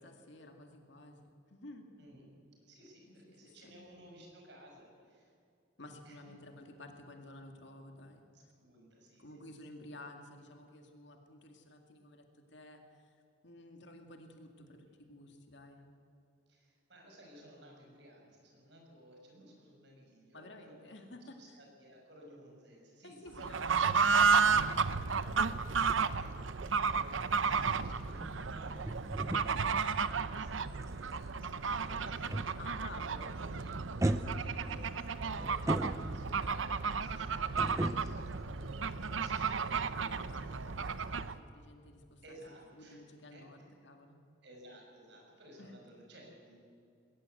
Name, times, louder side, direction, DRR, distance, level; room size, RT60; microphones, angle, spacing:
voice 1, 0.0-2.2 3.1-3.8 5.8-8.2 9.2-13.2 13.4-15.8 20.3-21.6 23.0-25.7 32.5-33.4 34.1-34.6 40.0-42.2 42.8-44.2 45.6-45.7, left 1 dB, 65° left, 4 dB, 2.2 m, -53 dB
voice 2, 2.7-5.3 6.0-6.3 8.3-9.3 16.5-23.3 26.0-34.9 35.4-40.8 42.2-43.0 43.3-43.4 44.4-46.6, right 1 dB, 60° right, 0 dB, 6.1 m, -57 dB
Fowl / Bird, 23.3-41.4, right 5 dB, 80° right, 0.8 m, -32 dB
sound 1, 27.3-32.9 33.1-33.5 34.0-36.5 37.6-39.5 39.8-39.9, right 1 dB, 15° right, 0.6 m, -38 dB
20.5 x 18.5 x 8.0 m, 2.5 s
head